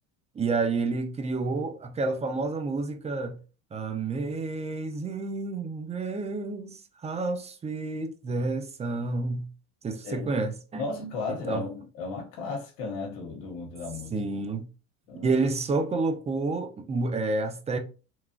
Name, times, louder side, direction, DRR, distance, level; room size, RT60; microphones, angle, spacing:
voice 1, 0.4-3.4 3.7-9.5 9.8-11.1 11.5-11.7 14.1-14.7 15.2-17.8, right 3 dB, 20° right, 0.4 m, -29 dB
voice 2, 10.0-10.4 10.7-14.1 15.1-15.3, left 4 dB, 70° left, 0.8 m, -35 dB
2.8 x 2.3 x 2.5 m
supercardioid pair, 90°, 36 cm